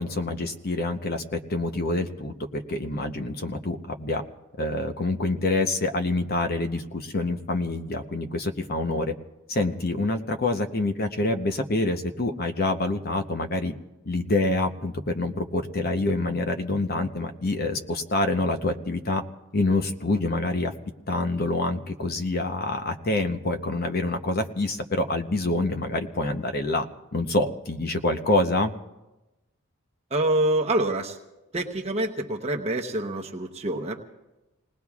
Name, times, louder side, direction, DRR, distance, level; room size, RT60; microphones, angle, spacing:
voice 1, 0.0-4.2 4.6-9.1 9.5-13.7 14.0-19.2 19.5-20.7 21.1-26.9 27.1-28.7, left 2 dB, 45° left, 6 dB, 0.8 m, -26 dB
voice 2, 30.1-31.2 31.5-34.0, right 1 dB, 30° right, 1 dB, 0.9 m, -26 dB
28.5 x 19.0 x 2.4 m, 1.0 s
head